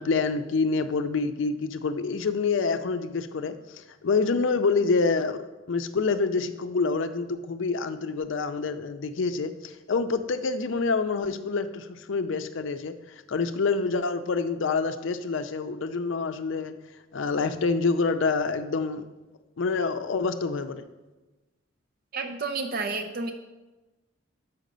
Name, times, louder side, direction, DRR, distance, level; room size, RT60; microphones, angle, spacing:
voice 1, 0.0-5.4 5.7-12.9 13.3-16.7 17.1-19.0 19.6-20.8, left 4 dB, 70° left, 10 dB, 0.5 m, -27 dB
voice 2, 22.1-23.3, right 4 dB, 45° right, 6 dB, 0.5 m, -30 dB
5.7 x 5.1 x 6.6 m, 1.1 s
head